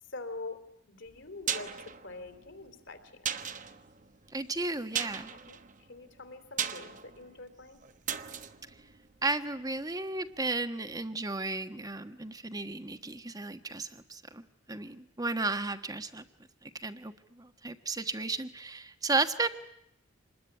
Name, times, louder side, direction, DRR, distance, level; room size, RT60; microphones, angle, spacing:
voice 1, 0.1-0.6 0.9-3.3 5.5-5.6 5.9-7.8, left 3 dB, 60° left, 8 dB, 3.3 m, -44 dB
sound 1, 1.1-9.9 10.2-10.3, right 8 dB, 40° right, 1.1 m, -39 dB
voice 2, 4.3-5.3 9.2-14.4 14.7-16.2 16.6-19.5, right 3 dB, 20° right, 9 dB, 1.3 m, -34 dB
26.5 x 20.5 x 9.9 m, 0.78 s
head